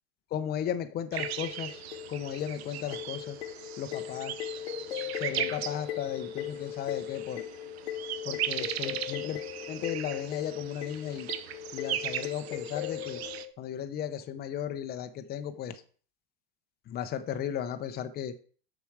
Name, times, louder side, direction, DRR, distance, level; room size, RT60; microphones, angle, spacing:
voice 1, 0.3-1.8 2.1-3.4 3.8-4.4 4.9-7.4 8.2-9.4 9.7-11.3 11.7-13.2 13.6-15.8 16.9-18.3, left 9 dB, 30° left, 10 dB, 0.8 m, -35 dB
sound 1, 1.1-13.4, right 11 dB, 85° right, 0.7 m, -38 dB
sound 2, 1.2-13.5, left 13 dB, 80° left, 0.9 m, -39 dB
7.0 x 6.2 x 4.7 m, 0.43 s
supercardioid pair, 120°, 31 cm